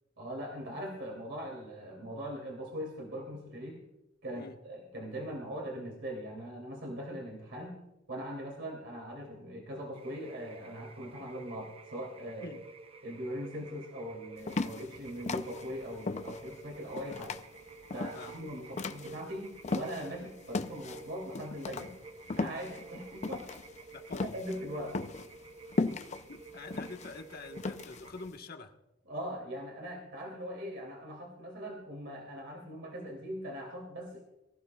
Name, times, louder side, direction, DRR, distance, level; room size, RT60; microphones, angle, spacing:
voice 1, 0.2-3.8 4.2-7.8 8.1-12.6 13.0-17.4 17.9-21.9 22.3-23.6 24.3-25.0 29.1-34.2, equal, 65° right, -1 dB, 2.8 m, -41 dB
sound 1, 9.9-28.3, right 4 dB, 30° right, 0.6 m, -51 dB
sound 2, 14.4-20.2 20.5-28.3, left 3 dB, 35° left, 0.5 m, -36 dB
voice 2, 23.9-24.4 26.3-28.7, left 3 dB, 55° left, 4 dB, 1.3 m, -46 dB
23.5 x 15.0 x 2.3 m, 0.97 s
head